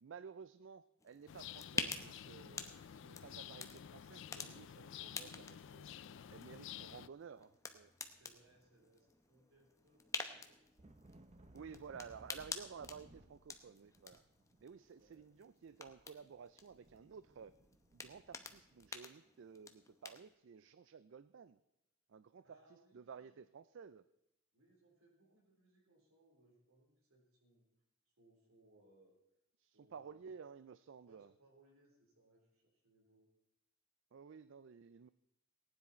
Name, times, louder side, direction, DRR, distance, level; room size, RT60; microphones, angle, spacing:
voice 1, 0.0-5.9 6.3-7.9 11.5-14.2 14.6-17.5 17.9-21.6 22.1-24.0 29.6-31.3 34.1-35.1, right 6 dB, 55° right, 14 dB, 0.4 m, -54 dB
sound 1, 1.0-20.3, left 4 dB, 15° left, 0.7 m, -49 dB
sound 2, 1.3-7.1, left 9 dB, 55° left, 0.3 m, -52 dB
sound 3, 8.1-9.1 9.4-18.9, right 1 dB, 30° right, 0.7 m, -65 dB
voice 2, 8.1-10.6 14.9-15.2 22.4-23.4 24.5-27.6 28.1-29.2 29.7-30.3 31.1-33.3, right 2 dB, 75° right, 0 dB, 3.9 m, -70 dB
18.5 x 9.8 x 4.3 m, 0.87 s
head